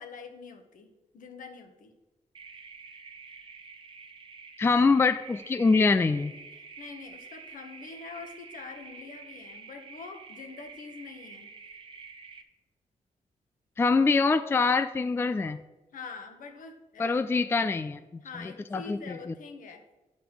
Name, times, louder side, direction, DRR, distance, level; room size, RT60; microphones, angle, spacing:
voice 1, 0.0-1.9 6.5-11.5 15.9-17.2 18.2-19.8, left 5 dB, 75° left, 5 dB, 1.4 m, -45 dB
frogs at frog hollow, 2.3-12.4, right 5 dB, 35° right, 0.9 m, -48 dB
voice 2, 4.6-6.3 13.8-15.6 17.0-18.0 18.4-19.3, left 4 dB, 15° left, 11 dB, 0.3 m, -24 dB
10.5 x 5.2 x 6.0 m, 1.1 s
wide cardioid pair, 130°, 14 cm